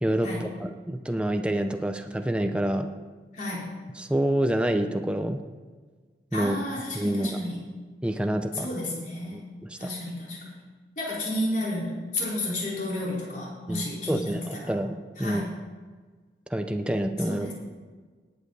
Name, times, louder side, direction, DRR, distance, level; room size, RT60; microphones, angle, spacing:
voice 1, 0.0-2.9 4.0-5.4 6.3-6.6 6.9-7.3 8.0-8.7 9.3-9.9 13.7-15.5 16.5-17.5, right 1 dB, 5° right, 6 dB, 0.5 m, -27 dB
voice 2, 3.3-3.7 6.3-7.6 8.5-9.4 9.8-10.6 11.0-14.7 15.2-15.5 17.2-17.5, left 1 dB, 45° left, -6 dB, 4.5 m, -32 dB
17.5 x 8.5 x 4.1 m, 1.5 s
head